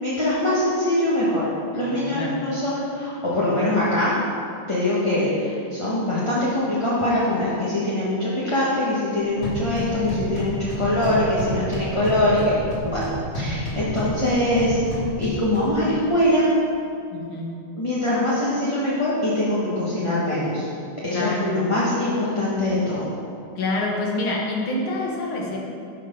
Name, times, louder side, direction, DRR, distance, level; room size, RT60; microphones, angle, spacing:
voice 1, 0.0-4.1 4.7-12.4 12.8-13.0 13.3-14.8 15.2-16.5 17.8-20.7 21.0-23.0, left 1 dB, 15° left, -8 dB, 1.2 m, -23 dB
voice 2, 1.7-2.4 17.1-17.5 21.1-21.5 23.6-25.6, left 2 dB, 85° left, -3 dB, 2.4 m, -27 dB
sound 1, 9.2-16.2, equal, 40° left, 3.0 m, -31 dB
12.5 x 4.8 x 5.4 m, 2.5 s
omnidirectional pair, 2.2 m